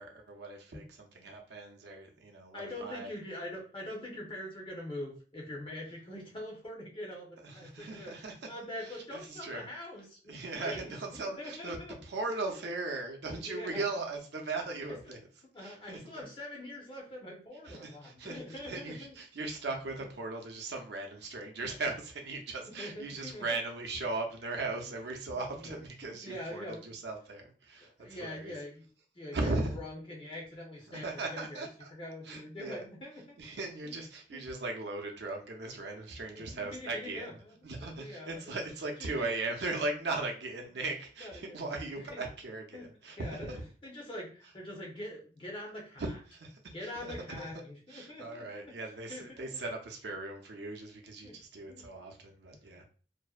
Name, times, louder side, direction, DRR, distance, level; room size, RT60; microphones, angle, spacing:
voice 1, 0.0-3.1 7.4-8.5 8.8-9.6 10.3-15.2 15.6-16.2 17.6-28.5 29.3-29.8 30.9-31.9 32.2-32.9 33.4-43.6 46.0-47.5 47.9-52.8, right 3 dB, 65° right, 2 dB, 0.5 m, -38 dB
voice 2, 2.5-8.1 8.5-11.9 13.4-13.9 15.5-19.1 22.6-23.5 25.3-26.8 27.8-28.8 29.1-31.1 31.3-33.4 33.8-33.9 34.3-34.4 36.3-37.6 37.8-38.3 39.0-39.3 41.2-41.6 42.1-42.3 42.7-42.9 43.2-43.5 43.8-46.0 46.7-48.7 49.1-49.5 51.2-51.4 51.7-51.9 52.5-52.8, left 1 dB, 30° left, -2 dB, 0.7 m, -44 dB
2.5 x 2.1 x 2.3 m, 0.40 s
head